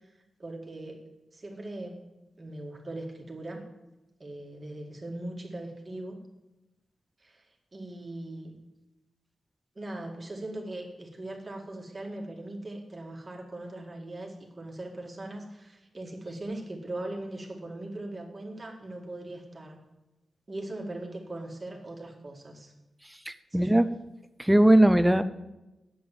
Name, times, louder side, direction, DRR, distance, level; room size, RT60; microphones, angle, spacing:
voice 1, 0.4-1.0 1.3-2.0 2.4-3.6 4.2-6.2 7.2-8.5 9.8-19.8 20.5-22.7 23.5-23.7, right 1 dB, 30° right, 1 dB, 1.9 m, -40 dB
voice 2, 23.3-23.8 24.4-25.2, right 1 dB, 5° right, 12 dB, 0.6 m, -20 dB
9.3 x 7.9 x 7.2 m, 0.99 s
wide cardioid pair, 105°, 0 cm